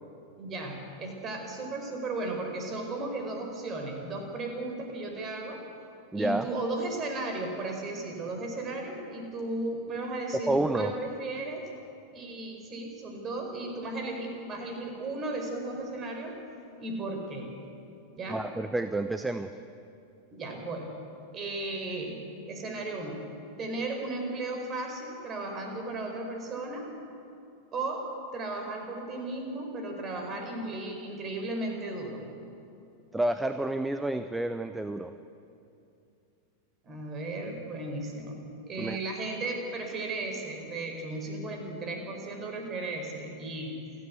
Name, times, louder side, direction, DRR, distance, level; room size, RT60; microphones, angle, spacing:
voice 1, 0.4-5.6 6.1-11.7 12.1-16.4 16.8-17.5 18.2-18.4 20.3-21.0 21.3-22.2 22.4-23.2 23.6-26.9 27.7-32.3 36.8-38.4 38.6-43.8, right 2 dB, 25° right, 3 dB, 4.9 m, -35 dB
voice 2, 6.1-6.5 10.5-10.9 18.3-19.5 33.1-35.1 38.8-39.0, right 2 dB, 5° right, 9 dB, 0.7 m, -29 dB
28.0 x 12.5 x 8.3 m, 2.6 s
figure-of-eight pair, 90°, 0 cm